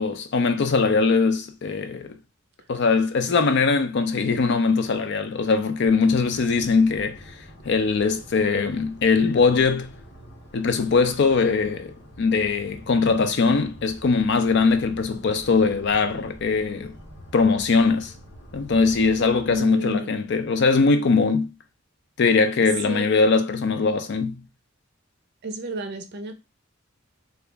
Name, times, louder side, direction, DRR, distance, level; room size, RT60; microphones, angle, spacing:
voice 1, 0.0-2.2 2.7-7.2 7.6-9.9 10.5-16.9 17.3-18.1 18.5-21.5 22.2-24.4, left 4 dB, 55° left, 0.4 m, -21 dB
sound 1, 5.9-19.6, equal, 90° left, 1.0 m, -45 dB
voice 2, 19.5-20.2 22.6-23.3 25.4-26.3, right 1 dB, 55° right, 0.5 m, -32 dB
2.9 x 2.4 x 3.3 m
head